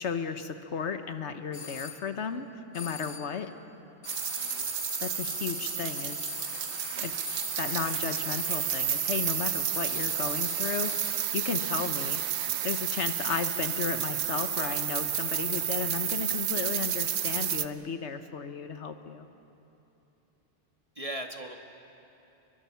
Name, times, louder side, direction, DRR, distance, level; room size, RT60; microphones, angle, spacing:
voice 1, 0.0-2.5 2.7-3.5 5.0-6.3 7.0-7.1 7.6-11.1 11.3-12.2 12.6-19.3, left 6 dB, 70° left, 9 dB, 1.3 m, -34 dB
sound 1, 1.5-2.0 2.7-3.4 4.0-11.4, left 6 dB, 45° left, 1.2 m, -41 dB
sound 2, 4.1-17.7, right 10 dB, 70° right, 0.9 m, -31 dB
voice 2, 4.4-4.7 7.8-7.9 14.5-14.8 21.0-21.6, right 1 dB, 30° right, 4 dB, 1.5 m, -40 dB
29.5 x 22.5 x 5.7 m, 3.0 s
omnidirectional pair, 1.2 m